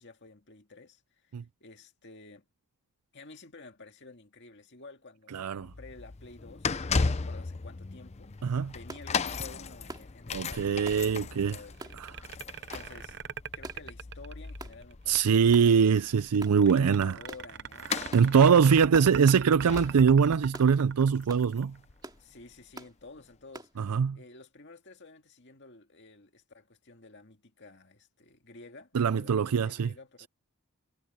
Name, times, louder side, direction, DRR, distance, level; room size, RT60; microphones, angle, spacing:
voice 1, 0.0-2.4 3.1-13.2 13.4-15.9 16.5-18.5 18.8-19.2 22.2-23.8 24.1-30.3, left 3 dB, 50° left, 2.1 m, -51 dB
voice 2, 5.3-5.7 8.4-8.7 10.3-11.6 12.0-12.1 15.1-17.2 18.1-21.8 23.8-24.2 28.9-29.9, right 6 dB, 90° right, 0.4 m, -23 dB
sound 1, 5.6-22.5 23.2-23.3, left 4 dB, 30° left, 0.6 m, -37 dB
sound 2, 8.9-9.1 9.9-10.1 10.9-11.0 11.8-12.0 12.7-12.9 13.6-13.9 14.6-14.8 15.5-15.7 16.4-16.6 17.3-17.5 18.1-18.3 18.9-19.1 19.7-20.0 20.5-20.7 21.3-21.5 22.0-22.2 22.7-22.9 23.5-23.7, right 2 dB, 20° right, 2.6 m, -44 dB
sound 3, 11.7-14.9 16.3-21.8, right 7 dB, 50° right, 0.6 m, -40 dB
head